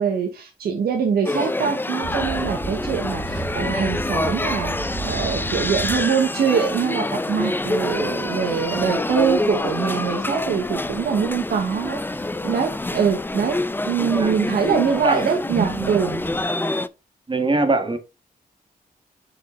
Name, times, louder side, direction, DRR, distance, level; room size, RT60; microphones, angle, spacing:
voice 1, 0.0-13.6 13.8-16.2, right 6 dB, 80° right, 1.2 m, -23 dB
Public Place Children Indoors, 1.2-16.9, left 2 dB, 15° left, 0.5 m, -26 dB
sound 1, 2.0-16.4, right 4 dB, 60° right, 1.6 m, -36 dB
voice 2, 17.3-18.0, right 2 dB, 30° right, 1.6 m, -21 dB
6.2 x 5.1 x 3.8 m
cardioid pair, 55°, 16 cm